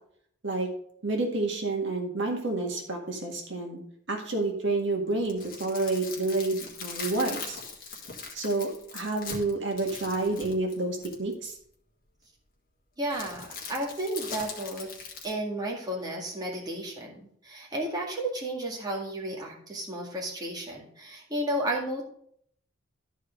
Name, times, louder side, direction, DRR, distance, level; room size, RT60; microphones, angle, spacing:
voice 1, 1.0-3.8 4.1-7.6 8.3-11.5, right 2 dB, 60° right, 2 dB, 1.9 m, -29 dB
sound 1, 5.1-11.3 13.1-15.3, left 5 dB, 45° left, 1.8 m, -40 dB
voice 2, 13.0-14.9 15.2-17.1 17.4-22.1, right 1 dB, 20° right, -2 dB, 2.0 m, -33 dB
12.0 x 4.8 x 5.2 m, 0.63 s
head